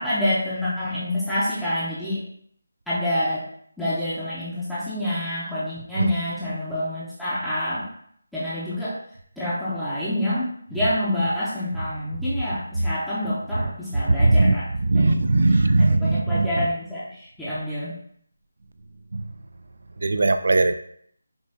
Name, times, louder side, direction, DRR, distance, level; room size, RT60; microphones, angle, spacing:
voice 1, 0.0-2.2 2.9-3.4 3.8-7.9 8.3-9.0 9.4-14.7 14.9-15.2 15.5-17.9, left 1 dB, ahead, -13 dB, 0.6 m, -27 dB
voice 2, 14.1-14.6 14.8-16.7 19.1-19.2 20.0-20.7, right 2 dB, 65° right, 10 dB, 0.3 m, -19 dB
5.3 x 2.2 x 2.7 m, 0.64 s
figure-of-eight pair, 165°, 0 cm